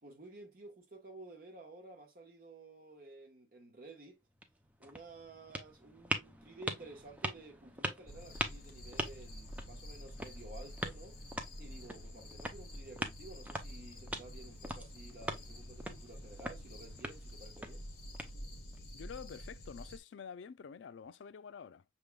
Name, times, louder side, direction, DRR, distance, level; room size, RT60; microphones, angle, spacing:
voice 1, 0.0-4.2 4.8-11.2 11.6-17.9, right 2 dB, 50° right, 1.2 m, -53 dB
sound 1, 4.2-18.8, right 1 dB, 10° right, 0.5 m, -43 dB
sound 2, 8.1-20.0, equal, 55° left, 1.1 m, -49 dB
voice 2, 18.9-21.8, left 6 dB, 85° left, 0.4 m, -48 dB
5.9 x 3.4 x 2.3 m
head